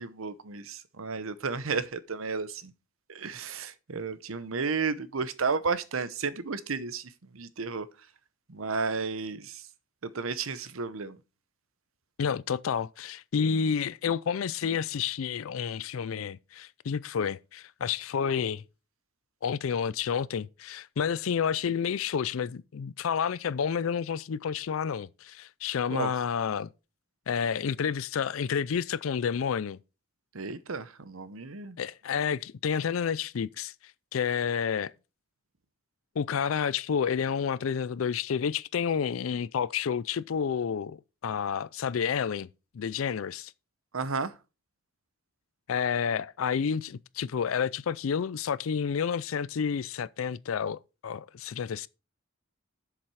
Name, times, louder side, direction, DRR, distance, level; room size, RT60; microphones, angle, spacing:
voice 1, 0.0-2.7 3.1-7.9 8.5-9.7 10.0-11.2 25.9-26.1 30.3-31.8 43.9-44.3, right 4 dB, 80° right, 0.8 m, -33 dB
voice 2, 12.2-18.6 19.4-26.7 27.3-29.8 31.8-33.7 34.1-34.9 36.2-42.5 42.7-43.5 45.7-51.9, left 7 dB, 80° left, 0.4 m, -30 dB
7.5 x 7.3 x 4.7 m
head